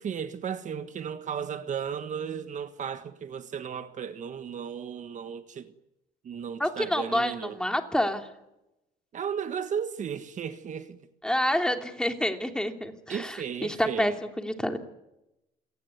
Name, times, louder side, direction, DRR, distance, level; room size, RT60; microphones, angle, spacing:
voice 1, 0.0-5.7 6.2-7.6 9.1-11.0 13.1-14.2, right 7 dB, 45° right, 1.6 m, -35 dB
voice 2, 6.6-8.3 11.2-14.8, left 1 dB, 5° left, 3.0 m, -28 dB
28.0 x 18.5 x 9.6 m
cardioid pair, 110°, 17 cm